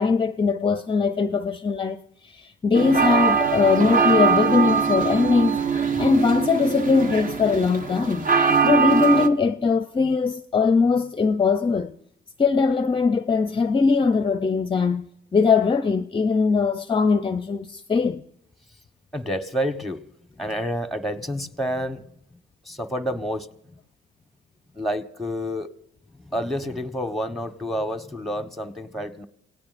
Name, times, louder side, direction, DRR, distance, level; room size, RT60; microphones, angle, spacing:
voice 1, 0.0-5.6 6.0-8.3 8.6-11.9 12.4-15.1 15.3-18.2, left 5 dB, 25° left, 0.5 m, -21 dB
sound 1, 2.7-9.3, right 6 dB, 40° right, 1.1 m, -22 dB
voice 2, 19.1-20.0 20.4-22.1 22.6-23.8 24.7-25.7 26.1-29.2, equal, ahead, 1.2 m, -29 dB
28.0 x 17.5 x 2.6 m
cardioid pair, 100°, 21 cm